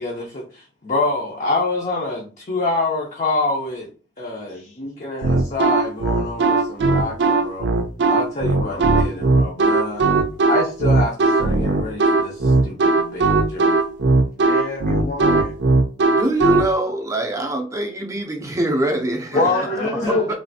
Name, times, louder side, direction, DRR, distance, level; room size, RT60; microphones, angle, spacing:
voice 1, 0.0-3.9 4.2-7.7 8.1-10.0 10.4-13.8 19.3-20.3, left 2 dB, 40° left, 0.6 m, -26 dB
sound 1, 5.2-16.7, right 3 dB, 75° right, 0.4 m, -18 dB
voice 2, 8.5-8.8 14.4-15.5 19.3-20.3, left 2 dB, 90° left, 0.8 m, -31 dB
voice 3, 16.1-19.5 20.3-20.4, right 1 dB, 20° right, 0.5 m, -23 dB
3.2 x 2.5 x 2.6 m
head